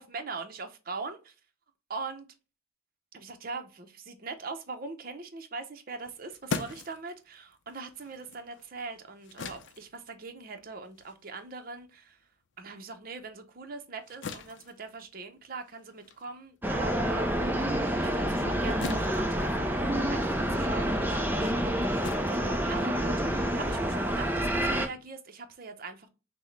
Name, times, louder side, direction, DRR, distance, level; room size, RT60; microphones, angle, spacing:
voice 1, 0.0-1.3 1.9-2.3 3.1-12.2 12.6-17.3 18.0-21.8 22.6-26.1, right 4 dB, 45° right, 0.7 m, -41 dB
sound 1, 5.9-12.7 13.1-23.3, left 4 dB, 60° left, 0.5 m, -43 dB
sound 2, 16.6-24.9, equal, 10° right, 0.4 m, -28 dB
5.9 x 2.1 x 3.2 m
head